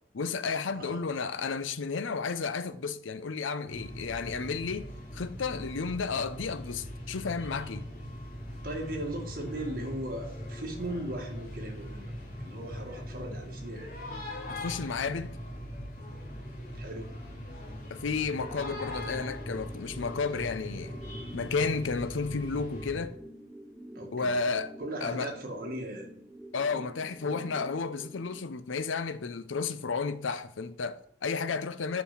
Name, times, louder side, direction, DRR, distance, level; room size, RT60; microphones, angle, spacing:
voice 1, 0.1-7.9 14.5-15.4 17.9-21.0 21.3-23.2 24.1-24.7 25.0-25.3 26.5-32.0, left 4 dB, 90° left, 0.6 m, -32 dB
sound 1, 3.7-23.0, equal, 45° left, 2.4 m, -41 dB
voice 2, 8.6-12.1 12.4-13.9 16.7-17.1 24.0-24.4 24.8-26.1, right 1 dB, 50° right, 1.8 m, -38 dB
sound 2, 18.4-28.4, right 1 dB, 5° right, 0.5 m, -47 dB
7.1 x 5.4 x 5.8 m
head